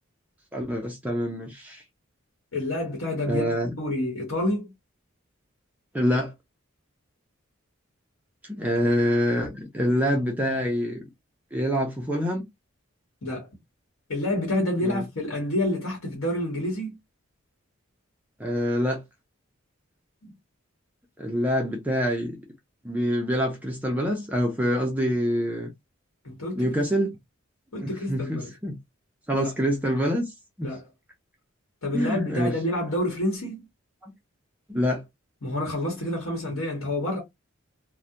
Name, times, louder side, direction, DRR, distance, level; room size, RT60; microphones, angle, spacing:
voice 1, 0.5-1.8 3.3-3.7 5.9-6.3 8.5-11.0 11.5-12.5 14.8-15.0 18.4-19.0 21.2-22.4 22.8-25.7 26.6-27.1 27.8-28.8 29.3-30.2 30.6-30.7 31.9-32.6 34.0-34.1 34.7-35.0, equal, 10° right, 0.4 m, -26 dB
voice 2, 2.5-4.7 13.2-13.5 14.1-17.0 20.2-20.3 26.2-26.7 27.7-28.5 29.3-29.5 30.6-30.9 31.8-33.7 35.4-37.2, left 1 dB, 85° left, 1.0 m, -28 dB
2.3 x 2.1 x 2.7 m
head